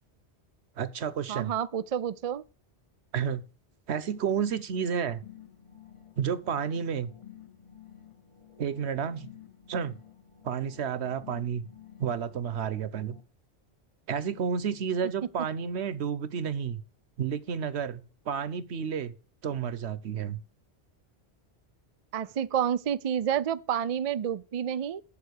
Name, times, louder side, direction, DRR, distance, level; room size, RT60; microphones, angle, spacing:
voice 1, 0.8-1.5 3.1-3.5 3.9-5.2 6.2-7.1 8.6-9.3 9.7-9.9 10.4-11.6 12.0-13.2 14.1-16.8 17.2-19.1 19.4-20.4, right 7 dB, 75° right, 1.1 m, -31 dB
voice 2, 1.3-2.4 22.1-25.0, right 9 dB, 50° right, 0.4 m, -29 dB
sound 1, 5.2-13.2, left 10 dB, 30° left, 1.0 m, -52 dB
7.7 x 7.0 x 6.5 m
omnidirectional pair, 1.1 m